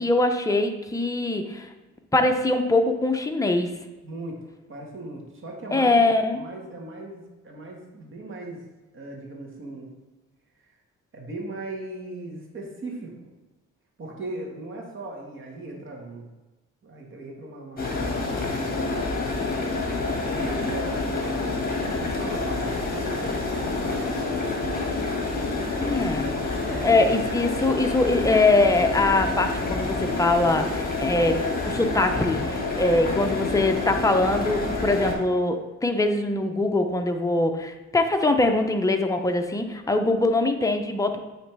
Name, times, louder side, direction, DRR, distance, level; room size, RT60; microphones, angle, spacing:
voice 1, 0.0-1.7 2.1-3.7 5.7-6.4 25.8-26.3 26.8-41.2, left 2 dB, 10° left, 5 dB, 0.6 m, -22 dB
voice 2, 4.0-4.4 4.7-6.0 6.3-8.6 8.9-9.9 11.1-13.3 14.0-16.3 16.8-18.5 19.4-21.4 21.8-24.5 26.6-27.0, right 2 dB, 40° right, -1 dB, 1.6 m, -38 dB
sound 1, 17.8-35.1, left 3 dB, 30° left, 1.5 m, -28 dB
8.8 x 3.2 x 3.4 m, 1.1 s
cardioid pair, 90°, 30 cm